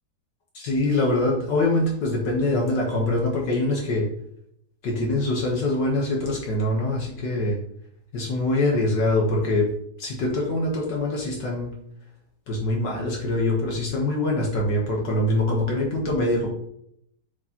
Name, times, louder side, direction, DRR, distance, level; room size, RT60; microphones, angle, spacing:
voice 1, 0.5-4.1 4.8-7.6 8.1-9.7 10.0-11.7 12.5-16.5, left 2 dB, 60° left, -1 dB, 1.7 m, -24 dB
7.3 x 4.4 x 2.9 m, 0.72 s
omnidirectional pair, 2.2 m